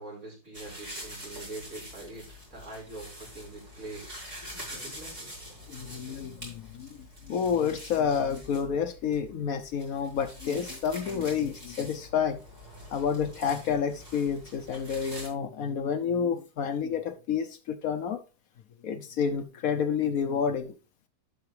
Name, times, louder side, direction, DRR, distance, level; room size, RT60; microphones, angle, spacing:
voice 1, 0.0-4.1 4.7-5.3, right 2 dB, 55° right, -4 dB, 5.2 m, -43 dB
sound 1, 0.5-15.3, equal, 25° right, 4.3 m, -45 dB
voice 2, 5.7-7.0 7.2-12.4 12.9-18.2 18.8-20.7, left 7 dB, 65° left, 9 dB, 1.1 m, -29 dB
11.5 x 5.8 x 3.2 m, 0.32 s
omnidirectional pair, 1.7 m